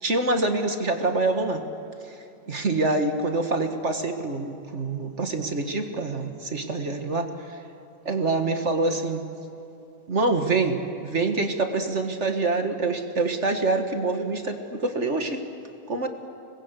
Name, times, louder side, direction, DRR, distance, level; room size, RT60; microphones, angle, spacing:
voice 1, 0.0-1.6 2.5-7.6 8.0-9.2 10.1-15.4 15.9-16.1, right 3 dB, 35° right, 5 dB, 1.7 m, -26 dB
26.5 x 21.0 x 8.2 m, 3.0 s
omnidirectional pair, 2.3 m